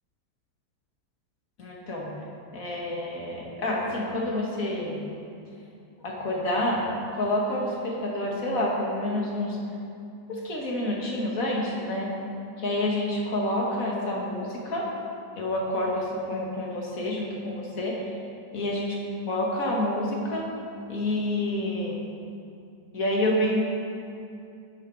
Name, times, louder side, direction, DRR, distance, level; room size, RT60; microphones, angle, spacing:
voice 1, 1.6-2.1 2.5-5.0 6.0-6.8 7.1-9.6 10.3-12.1 12.6-14.9 15.4-18.1 18.5-19.0 19.2-20.5 20.9-22.0 22.9-23.6, left 1 dB, 45° left, -2 dB, 2.3 m, -28 dB
12.0 x 9.9 x 4.9 m, 2.5 s
omnidirectional pair, 2.0 m